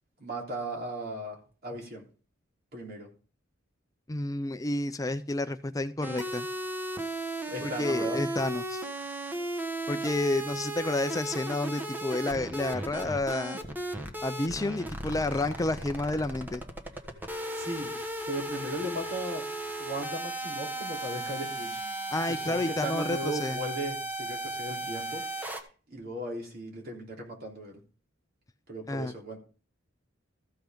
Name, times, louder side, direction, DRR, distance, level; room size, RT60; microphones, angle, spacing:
voice 1, 0.2-1.4 1.6-2.0 2.7-3.1 7.5-8.2 17.5-17.9 18.3-19.4 19.8-21.8 22.3-25.2 25.9-27.8 28.7-29.4, right 1 dB, 55° right, 0 dB, 3.5 m, -36 dB
voice 2, 4.1-6.5 7.6-8.9 9.9-13.6 14.2-16.6 22.1-23.6 28.9-29.1, left 2 dB, 20° left, 10 dB, 0.4 m, -30 dB
sound 1, 6.0-25.6, right 1 dB, 10° right, 1.2 m, -36 dB
14.0 x 5.8 x 5.2 m, 0.37 s
head